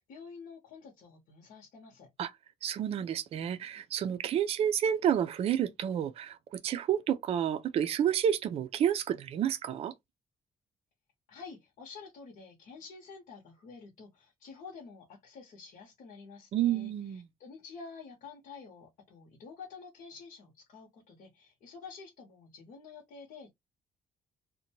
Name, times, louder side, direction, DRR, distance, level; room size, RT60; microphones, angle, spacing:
voice 1, 0.0-2.1 11.3-23.5, left 5 dB, 65° left, 0.9 m, -49 dB
voice 2, 2.6-9.9 16.5-17.2, right 9 dB, 45° right, 0.4 m, -30 dB
2.6 x 2.2 x 2.8 m
cardioid pair, 175°, 14 cm